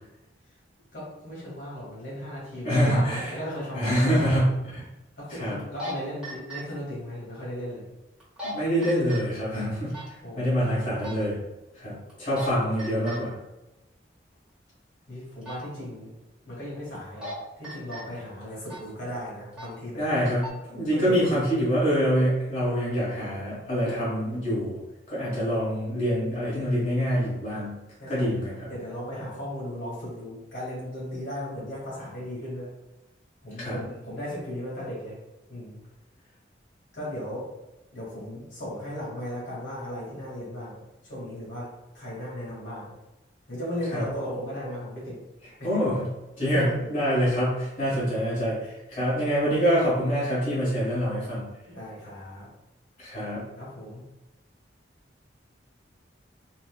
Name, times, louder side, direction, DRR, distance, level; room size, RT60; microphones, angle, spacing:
voice 1, 0.9-4.2 5.2-7.9 10.2-10.8 15.1-16.1 16.4-20.1 20.9-21.2 28.0-32.7 33.4-35.2 35.5-35.8 36.9-37.5 37.9-42.9 43.5-45.2 45.6-45.7 46.5-46.7 47.9-48.0 51.6-52.5 53.6-54.1, equal, 75° left, -6 dB, 1.4 m, -36 dB
voice 2, 2.6-3.4 3.7-4.8 5.3-5.6 8.4-9.9 10.3-11.4 11.8-13.3 19.9-24.8 25.1-27.7 28.1-28.7 33.6-33.8 43.9-44.0 45.6-46.1 46.4-51.4 53.0-53.4, equal, 45° left, -9 dB, 1.2 m, -25 dB
sound 1, 5.6-5.9 6.2-6.6 8.2-8.5 8.8-9.2 9.9-10.1 11.0-11.2 12.1-12.5 12.8-13.2 15.4-15.6 16.9-17.3 17.6-18.0 18.7-18.9 19.5-19.7 20.2-20.5, equal, 5° right, 1.0 m, -36 dB
4.0 x 2.1 x 2.2 m, 1.0 s
head